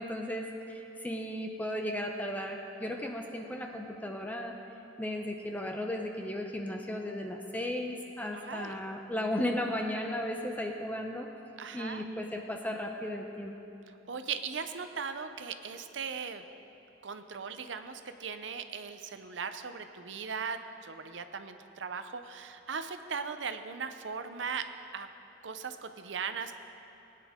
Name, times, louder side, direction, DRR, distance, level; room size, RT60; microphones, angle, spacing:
voice 1, 0.0-4.5 5.0-11.3 11.7-13.5, left 1 dB, 10° left, 3 dB, 0.6 m, -35 dB
voice 2, 8.3-8.8 11.6-12.0 13.9-16.4 17.0-24.7 24.9-25.1 25.4-26.6, right 6 dB, 80° right, 9 dB, 0.7 m, -38 dB
19.5 x 9.3 x 3.6 m, 3.0 s
head